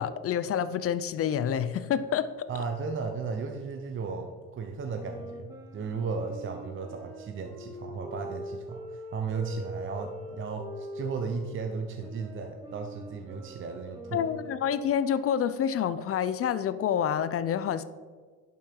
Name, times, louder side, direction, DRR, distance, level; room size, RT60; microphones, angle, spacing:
voice 1, 0.0-2.3 14.1-17.8, left 8 dB, 45° left, 14 dB, 0.6 m, -28 dB
voice 2, 2.5-14.3, right 4 dB, 40° right, 4 dB, 0.9 m, -35 dB
sound 1, 4.9-11.6 12.0-15.0, equal, 10° right, 2.6 m, -43 dB
11.5 x 5.5 x 4.6 m, 1.5 s
cardioid pair, 105°, 32 cm